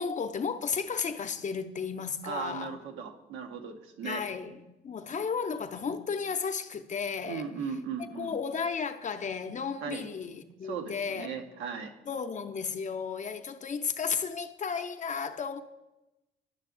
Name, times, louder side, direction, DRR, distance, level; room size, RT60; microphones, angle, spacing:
voice 1, 0.0-2.7 4.0-7.5 8.1-11.3 12.1-15.6, left 6 dB, 40° left, 0.6 m, -34 dB
voice 2, 2.2-4.2 7.2-8.4 9.8-10.1 10.6-11.9, right 6 dB, 85° right, 0.8 m, -37 dB
10.5 x 5.8 x 3.7 m
cardioid pair, 90°, 20 cm